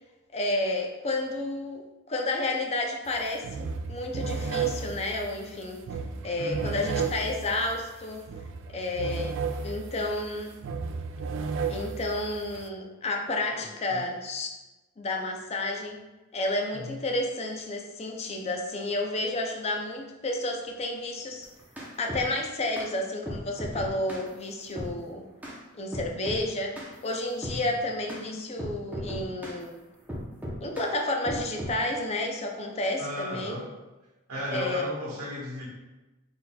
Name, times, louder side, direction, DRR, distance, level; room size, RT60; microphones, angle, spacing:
voice 1, 0.3-5.8 6.2-8.2 8.7-9.3 9.6-10.6 11.7-14.5 15.0-16.0 16.3-21.5 22.0-25.2 25.8-26.8 27.0-29.7 30.6-33.6 34.5-34.9, left 2 dB, 30° left, 2 dB, 0.4 m, -31 dB
sound 1, 3.1-3.2 3.4-12.7, right 5 dB, 60° right, 0.3 m, -34 dB
voice 2, 6.4-6.8 13.5-14.1 16.7-17.0 27.5-27.7 33.0-33.7 34.3-35.7, left 1 dB, 90° right, -3 dB, 1.3 m, -35 dB
sound 2, 21.4-22.3 22.8-22.9 23.3-24.3 24.8-24.9 25.4-25.6 25.9-26.4 26.8-26.9 27.4-27.6 28.1-28.2 28.6-29.6 30.1-30.9 31.3-31.8, equal, 10° right, 0.7 m, -36 dB
4.0 x 3.9 x 2.2 m, 1.1 s
head